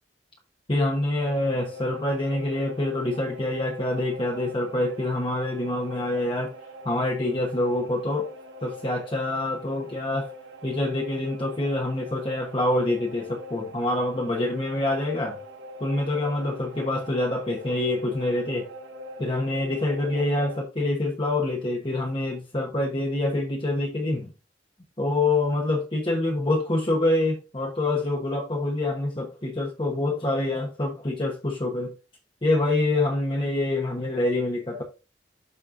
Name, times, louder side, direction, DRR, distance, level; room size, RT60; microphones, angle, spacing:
voice 1, 0.7-6.6 6.8-8.3 8.6-10.3 10.6-15.4 15.8-18.7 19.2-24.3 25.0-31.9 32.4-34.8, left 2 dB, 25° left, 1.1 m, -26 dB
sound 1, 1.2-20.6, left 1 dB, 90° right, 1.5 m, -42 dB
12.5 x 4.3 x 2.6 m
head